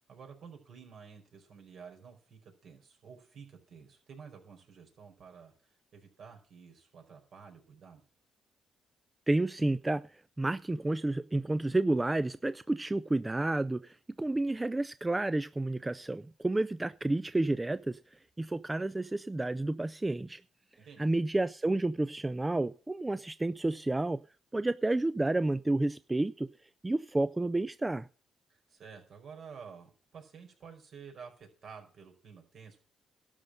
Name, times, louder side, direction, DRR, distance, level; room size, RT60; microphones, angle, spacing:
voice 1, 0.0-8.0 20.8-21.1 28.5-32.8, right 6 dB, 60° right, 4.7 m, -51 dB
voice 2, 9.3-20.4 21.0-24.2 24.5-26.5 26.8-28.1, right 2 dB, 15° right, 0.4 m, -30 dB
12.5 x 5.3 x 7.7 m
cardioid pair, 90°, 0 cm